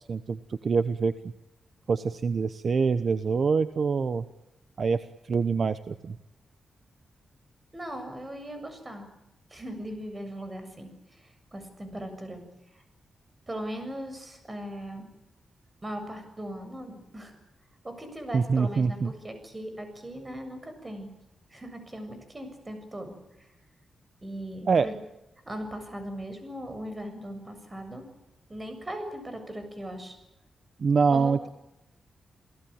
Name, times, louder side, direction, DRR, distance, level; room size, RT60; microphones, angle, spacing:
voice 1, 0.1-1.1 1.9-4.2 4.8-5.0 5.3-6.2 18.3-19.1 24.7-24.9 30.8-31.5, right 5 dB, 55° right, 12 dB, 1.0 m, -25 dB
voice 2, 7.7-9.1 9.5-12.4 12.7-12.8 13.5-15.1 15.8-17.3 17.8-21.1 21.5-23.5 24.2-25.0 25.4-28.1 28.5-30.2 31.1-31.5, right 1 dB, 20° right, 7 dB, 7.3 m, -39 dB
29.0 x 17.5 x 8.9 m, 0.91 s
cardioid pair, 100°, 0 cm